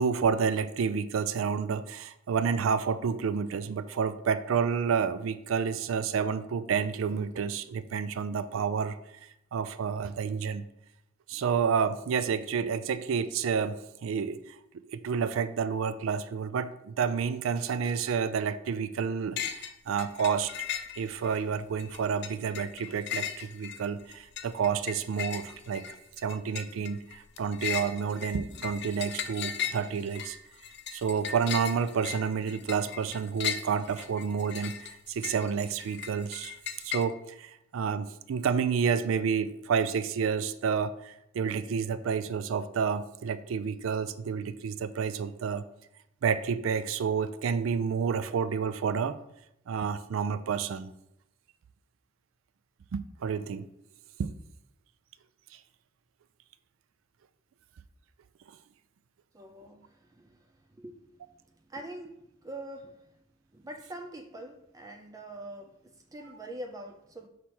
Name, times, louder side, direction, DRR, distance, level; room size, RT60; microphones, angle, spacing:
voice 1, 0.0-9.0 9.5-10.7 11.3-14.4 14.9-20.5 21.0-25.9 26.2-30.4 30.9-34.8 35.1-36.5 36.8-45.6 46.2-49.2 49.7-50.9 52.9-53.7 54.2-54.3, right 6 dB, 90° right, 0.4 m, -29 dB
sound 1, 19.4-19.7 20.0-21.4 21.8-37.0, left 9 dB, 60° left, 0.5 m, -37 dB
voice 2, 59.3-61.1 61.7-63.2 63.5-67.3, right 1 dB, 20° right, 0.4 m, -44 dB
6.1 x 3.1 x 5.6 m
head